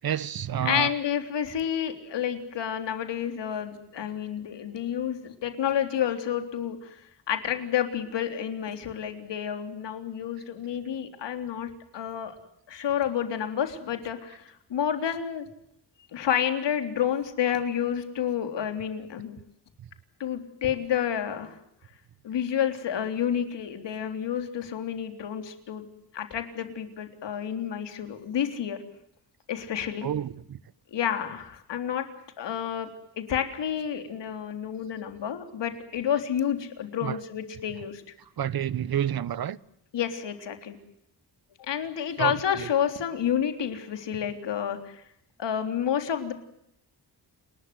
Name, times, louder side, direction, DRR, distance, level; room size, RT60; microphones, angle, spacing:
voice 1, 0.0-0.9 19.8-19.9 30.0-30.6 37.0-37.2 38.4-39.6 42.2-42.7, right 10 dB, 60° right, 1.1 m, -29 dB
voice 2, 0.6-7.0 7.3-12.4 12.7-15.5 16.1-19.4 20.2-21.6 22.2-25.9 26.1-28.8 29.5-30.1 30.9-32.1 32.4-32.9 33.2-38.0 39.9-40.8 41.6-45.0 45.4-46.3, left 9 dB, 90° left, 3.7 m, -30 dB
29.5 x 20.5 x 7.8 m
wide cardioid pair, 135°, 41 cm